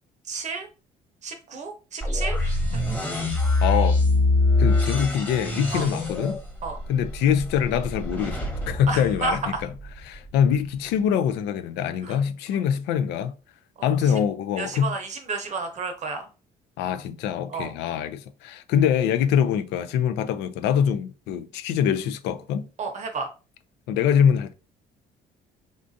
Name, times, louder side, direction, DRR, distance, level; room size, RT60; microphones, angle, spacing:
voice 1, 0.3-0.7 1.2-2.8 5.7-5.9 6.6-6.8 8.9-9.6 12.0-12.2 13.8-13.9 14.6-16.2 17.5-17.7 22.8-23.3, right 4 dB, 45° right, 0.7 m, -31 dB
sound 1, 2.0-9.9, left 2 dB, 10° left, 1.2 m, -24 dB
voice 2, 3.6-4.0 4.6-6.4 6.9-9.7 10.1-13.3 13.8-14.9 16.8-22.7 23.9-24.5, left 8 dB, 85° left, 0.4 m, -24 dB
3.6 x 2.4 x 2.6 m
cardioid pair, 110°, 17 cm